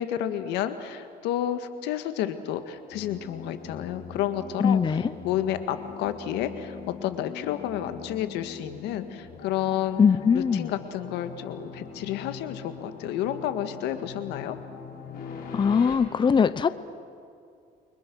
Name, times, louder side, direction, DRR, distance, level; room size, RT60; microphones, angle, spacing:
voice 1, 0.0-4.8 5.2-10.0 10.3-14.6, left 11 dB, 90° left, 9 dB, 1.8 m, -30 dB
sound 1, 2.9-16.0, left 6 dB, 60° left, 5.4 m, -42 dB
voice 2, 4.6-5.1 10.0-10.7 15.5-16.7, left 6 dB, 30° left, 14 dB, 0.8 m, -21 dB
29.0 x 24.5 x 6.3 m, 2.4 s
cardioid pair, 110°, 17 cm